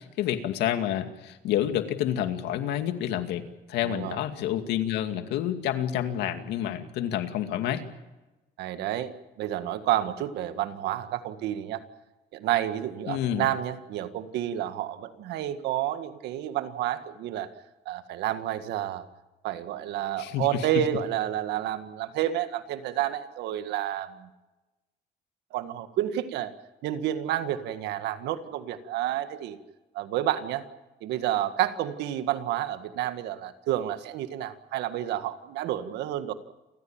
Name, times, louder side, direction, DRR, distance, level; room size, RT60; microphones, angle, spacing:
voice 1, 0.0-3.4 3.7-7.8 13.1-13.5 20.2-20.8, left 11 dB, 85° left, 8 dB, 2.3 m, -29 dB
voice 2, 3.8-4.2 8.6-9.1 9.4-11.8 12.3-17.5 17.9-19.0 19.4-24.3 25.5-26.5 26.8-29.6 29.9-30.6 31.0-36.3, right 12 dB, 85° right, 10 dB, 1.8 m, -30 dB
29.0 x 15.0 x 8.9 m, 1.1 s
cardioid pair, 110°, 17 cm